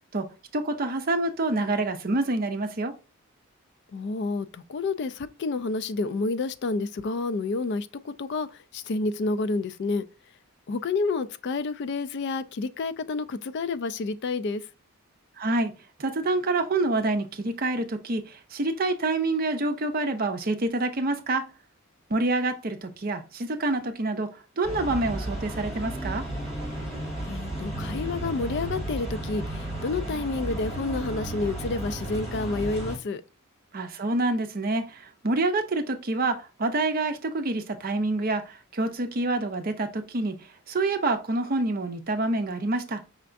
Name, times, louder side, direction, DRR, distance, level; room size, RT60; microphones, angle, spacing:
voice 1, 0.1-2.9 15.4-15.7 16.0-21.4 22.1-26.2 33.7-40.4 40.7-43.0, right 2 dB, 40° right, 0.6 m, -27 dB
voice 2, 3.9-10.0 10.7-14.7 27.2-33.2, left 3 dB, 50° left, 0.3 m, -29 dB
sound 1, 24.6-33.0, right 1 dB, 30° left, 2.1 m, -33 dB
5.6 x 3.3 x 2.5 m
head